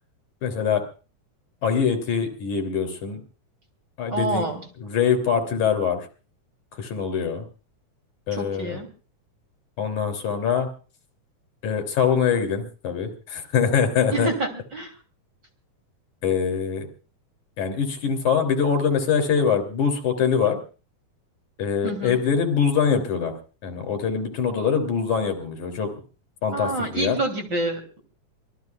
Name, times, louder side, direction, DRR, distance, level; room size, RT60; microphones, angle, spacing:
voice 1, 0.4-0.8 1.6-3.2 4.0-4.4 4.8-6.1 6.7-7.4 8.3-8.8 9.8-10.7 11.6-14.3 16.2-16.9 17.6-20.6 21.6-23.3 23.6-25.9 26.4-27.2, left 6 dB, 65° left, 6 dB, 4.4 m, -23 dB
voice 2, 4.1-4.6 8.3-8.9 14.1-14.9 21.8-22.2 26.5-28.0, right 2 dB, 35° right, 4 dB, 3.6 m, -27 dB
25.5 x 19.0 x 2.4 m, 0.36 s
omnidirectional pair, 3.7 m